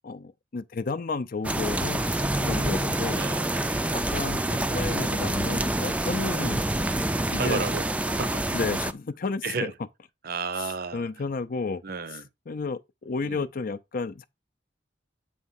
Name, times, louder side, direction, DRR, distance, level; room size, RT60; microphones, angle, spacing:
voice 1, 0.0-2.0 2.5-3.2 3.9-6.6 7.3-7.6 8.5-9.7 10.9-11.8 12.1-12.2 12.5-14.2, left 4 dB, 50° left, 0.5 m, -32 dB
sound 1, 1.4-8.9, right 1 dB, 5° right, 0.4 m, -27 dB
Keyboard (musical), 2.2-5.1, equal, 20° left, 0.8 m, -37 dB
voice 2, 2.2-2.8 3.1-3.6 6.3-6.5 7.4-8.5 9.4-9.7 10.2-11.1 11.8-12.3 13.2-13.4, right 4 dB, 55° right, 0.7 m, -33 dB
8.5 x 3.5 x 5.6 m
head